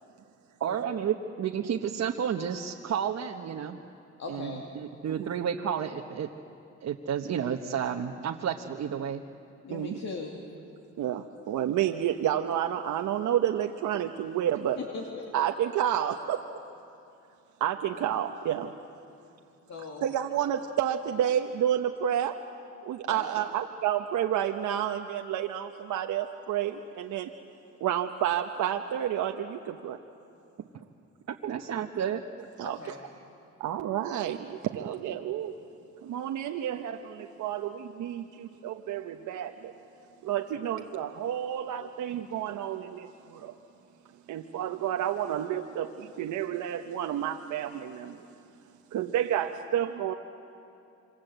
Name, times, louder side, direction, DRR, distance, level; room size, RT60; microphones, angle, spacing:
voice 1, 0.6-3.8 4.3-6.3 6.8-9.2 31.3-32.2, right 8 dB, 60° right, 1 dB, 1.2 m, -31 dB
voice 2, 4.2-4.7 9.6-10.4 14.8-15.3 19.7-20.2 23.0-23.3 32.6-33.0, left 4 dB, 60° left, 0 dB, 2.8 m, -39 dB
voice 3, 9.7-10.0 11.0-14.8 15.3-16.4 17.6-18.7 20.0-22.4 22.8-27.3 27.8-30.0 32.6-33.0 33.6-35.5 36.0-39.7 40.2-43.6 44.3-48.3 48.9-50.1, right 10 dB, 80° right, 4 dB, 1.1 m, -30 dB
27.5 x 25.5 x 8.0 m, 2.7 s
cardioid pair, 90°, 30 cm